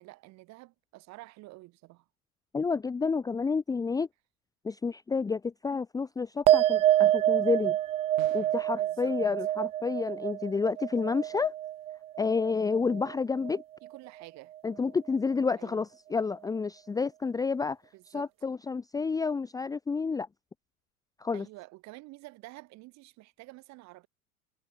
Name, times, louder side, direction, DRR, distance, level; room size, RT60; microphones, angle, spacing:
voice 1, 0.0-2.1 8.8-9.2 13.8-14.5 15.6-15.9 17.9-18.3 21.3-24.1, right 21 dB, 40° right, 3.9 m, -49 dB
voice 2, 2.5-4.1 4.6-7.8 8.3-11.5 12.2-13.6 14.6-17.8 18.1-20.3 21.2-21.5, left 4 dB, 10° left, 0.9 m, -30 dB
sound 1, 6.5-13.2 13.4-14.1, right 13 dB, 15° right, 0.5 m, -27 dB
sound 2, 8.2-8.7, right 11 dB, 65° right, 5.9 m, -47 dB
figure-of-eight pair, 95°, 43 cm